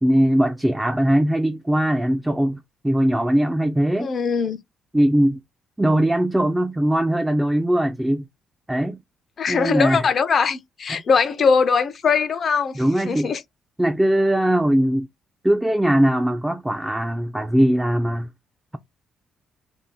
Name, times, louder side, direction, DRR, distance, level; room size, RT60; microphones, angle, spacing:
voice 1, 0.0-4.1 4.9-5.4 5.8-8.2 8.7-9.0 9.5-10.1 10.9-11.0 12.8-13.3 13.8-15.1 15.4-18.3, right 1 dB, 10° right, 0.4 m, -20 dB
voice 2, 4.0-4.6 9.4-13.4, left 5 dB, 50° left, 0.5 m, -21 dB
2.7 x 2.3 x 3.5 m
cardioid pair, 90°, 0 cm